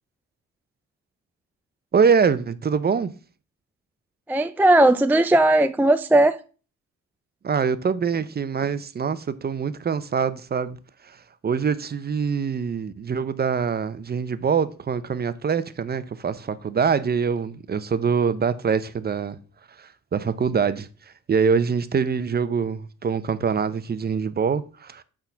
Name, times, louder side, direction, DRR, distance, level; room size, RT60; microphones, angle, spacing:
voice 1, 1.9-3.1 7.4-10.8 11.0-11.2 11.4-19.4 19.8-20.9 21.3-25.0, right 6 dB, 30° right, 0.7 m, -24 dB
voice 2, 4.3-6.4, right 1 dB, 5° right, 0.4 m, -17 dB
8.4 x 3.8 x 5.6 m
cardioid pair, 90°, 30 cm